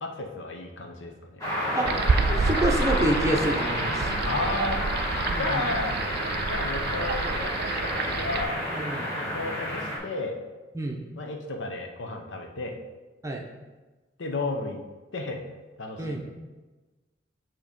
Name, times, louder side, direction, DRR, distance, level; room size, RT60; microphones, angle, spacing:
voice 1, 0.0-1.4 4.2-4.8 5.4-5.9 6.5-7.7 8.1-8.6 9.1-10.4 11.2-12.8 14.2-14.8 15.1-15.4 15.8-16.2, left 2 dB, 75° left, 3 dB, 0.8 m, -33 dB
sound 1, 1.4-10.0, left 1 dB, 20° left, 1.7 m, -30 dB
sound 2, 1.9-8.4, right 4 dB, 55° right, 0.4 m, -29 dB
voice 2, 2.3-4.1 5.3-5.7 8.7-9.1 10.7-11.1 13.2-13.4 16.0-16.2, right 1 dB, 15° right, 1 dB, 0.7 m, -28 dB
7.3 x 3.0 x 5.2 m, 1.2 s
head